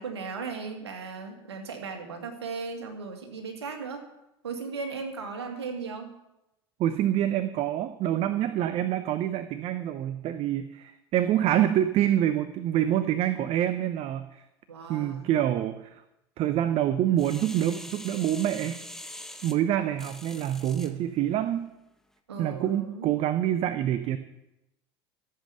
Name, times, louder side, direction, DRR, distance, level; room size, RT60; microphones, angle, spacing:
voice 1, 0.0-4.1 4.4-6.1 14.7-15.3 22.3-23.1, right 4 dB, 85° right, 4 dB, 2.1 m, -37 dB
voice 2, 6.8-14.4 14.9-16.0 16.4-18.8 19.4-21.7 22.4-24.2, right 11 dB, 50° right, 11 dB, 0.8 m, -26 dB
sound 1, 17.2-20.9 21.5-21.6, left 1 dB, 5° left, 1.4 m, -43 dB
14.0 x 7.7 x 6.8 m, 0.90 s
hypercardioid pair, 75°, 14 cm